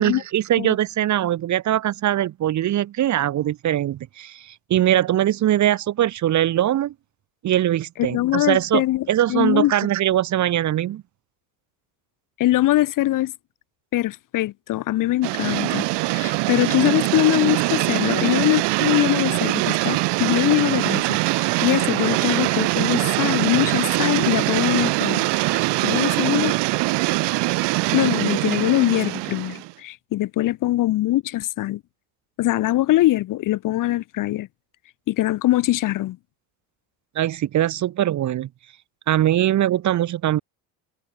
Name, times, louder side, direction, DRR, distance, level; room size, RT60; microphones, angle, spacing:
voice 1, 0.0-4.4 4.7-6.9 7.4-8.8 9.1-11.0 37.2-38.5 39.1-40.4, right 12 dB, 40° right, 0.8 m, -21 dB
voice 2, 8.0-9.7 12.4-13.3 13.9-26.6 27.9-31.8 32.4-34.5 35.1-36.2, left 16 dB, 45° left, 0.6 m, -22 dB
sound 1, 15.2-29.7, right 22 dB, 70° right, 1.6 m, -22 dB
supercardioid pair, 80°, 43 cm